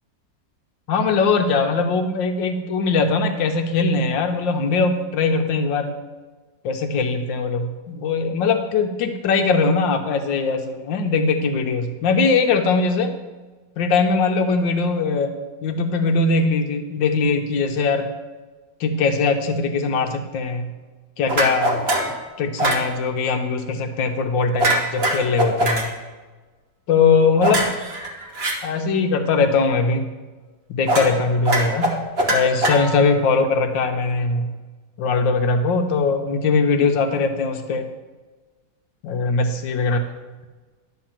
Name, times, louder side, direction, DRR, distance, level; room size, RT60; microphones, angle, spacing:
voice 1, 0.9-5.9 6.6-13.1 13.8-15.3 15.6-18.1 18.8-20.7 21.2-21.9 22.4-25.9 26.9-27.7 28.6-30.1 30.7-31.9 32.3-34.5 35.0-37.8 39.0-40.0, left 4 dB, 80° left, 6 dB, 1.6 m, -21 dB
sound 1, 21.3-22.2 22.6-22.9 24.6-25.9 27.4-28.5 30.9-31.1 31.4-33.2, right 1 dB, 40° right, 1.3 m, -21 dB
10.5 x 3.9 x 7.3 m, 1.3 s
omnidirectional pair, 2.0 m